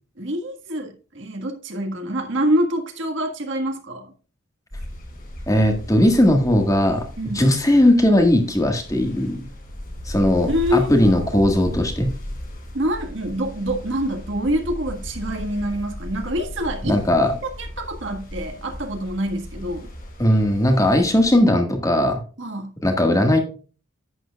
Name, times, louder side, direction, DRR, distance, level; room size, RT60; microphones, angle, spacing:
voice 1, 0.2-4.1 7.2-7.4 10.5-11.3 12.7-17.0 17.4-19.9 22.4-22.7, equal, 65° right, 1.7 m, -26 dB
sound 1, 4.7-21.4, equal, 45° left, 3.9 m, -36 dB
voice 2, 5.5-7.0 7.3-9.4 10.0-12.1 16.8-17.3 20.2-22.2 22.8-23.4, left 1 dB, 15° left, 1.7 m, -18 dB
11.0 x 9.1 x 2.3 m
head